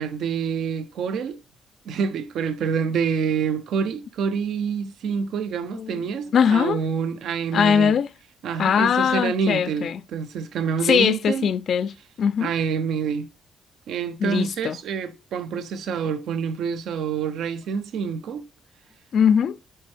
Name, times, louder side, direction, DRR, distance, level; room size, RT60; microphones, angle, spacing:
voice 1, 0.0-1.4 1.8-8.0 8.4-11.5 12.4-13.3 13.9-18.4, right 6 dB, 75° right, 0.8 m, -27 dB
voice 2, 6.3-6.8 7.5-8.1 8.6-10.0 10.8-12.5 14.2-14.8 19.1-19.6, left 7 dB, 60° left, 0.4 m, -21 dB
7.7 x 4.4 x 3.4 m
cardioid pair, 90°, 0 cm